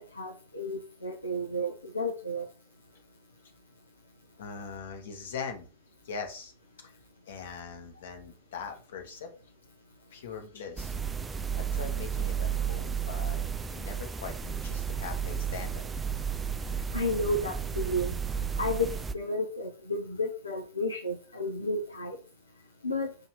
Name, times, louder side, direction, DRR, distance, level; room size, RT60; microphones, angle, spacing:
voice 1, 0.1-2.5 16.9-18.1 18.6-18.9 19.1-22.2 22.8-23.1, left 1 dB, 80° left, 1 dB, 0.9 m, -32 dB
voice 2, 4.4-5.7 6.0-6.5 6.8-7.0 7.3-9.3 10.1-10.9 11.6-13.4 13.7-16.0, left 6 dB, 60° left, 4 dB, 1.3 m, -41 dB
sound 1, 10.8-19.1, right 7 dB, 15° right, 0.4 m, -33 dB
6.8 x 3.0 x 4.7 m, 0.36 s
figure-of-eight pair, 90°, 0 cm